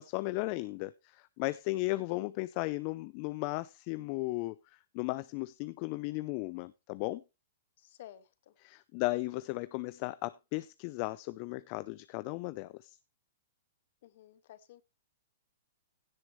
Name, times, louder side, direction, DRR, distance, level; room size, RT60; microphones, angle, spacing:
voice 1, 0.0-7.2 8.6-13.0, left 21 dB, 45° left, 0.6 m, -36 dB
voice 2, 7.8-8.5 14.0-14.8, left 13 dB, 60° left, 1.7 m, -53 dB
16.5 x 7.5 x 3.2 m
hypercardioid pair, 125°, 0 cm